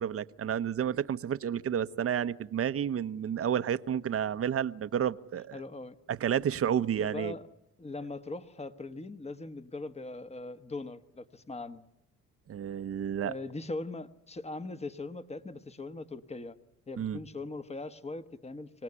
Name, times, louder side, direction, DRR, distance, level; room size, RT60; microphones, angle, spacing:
voice 1, 0.0-5.6 6.1-7.3 12.5-13.3 17.0-17.2, right 9 dB, 50° right, 0.9 m, -31 dB
voice 2, 5.5-6.0 7.0-7.4 7.8-11.8 13.2-16.6 16.9-18.8, left 2 dB, 20° left, 1.3 m, -40 dB
25.5 x 18.5 x 9.8 m
cardioid pair, 90°, 30 cm